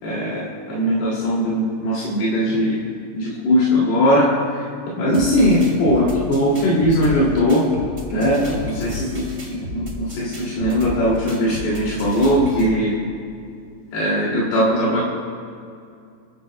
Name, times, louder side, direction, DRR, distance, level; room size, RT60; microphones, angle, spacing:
voice 1, 0.0-2.8 3.2-4.6 5.0-7.6 8.1-9.2 9.5-12.9 13.9-15.0, equal, 80° left, -7 dB, 4.7 m, -19 dB
sound 1, 5.1-12.7, left 1 dB, 30° right, 1.8 m, -33 dB
29.0 x 13.0 x 2.3 m, 2.4 s
omnidirectional pair, 4.5 m